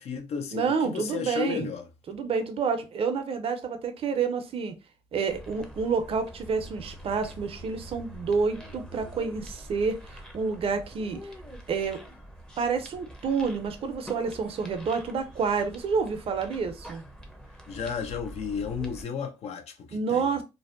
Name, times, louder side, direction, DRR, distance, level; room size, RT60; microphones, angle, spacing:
voice 1, 0.0-1.9 17.7-20.3, left 6 dB, 60° left, 0.6 m, -33 dB
voice 2, 0.5-1.7 2.1-4.7 5.1-11.2 11.7-12.0 12.6-17.0 19.9-20.4, right 5 dB, 50° right, 0.5 m, -29 dB
sound 1, 5.3-19.0, right 1 dB, 5° left, 0.6 m, -45 dB
2.6 x 2.1 x 2.4 m
supercardioid pair, 70°, 12 cm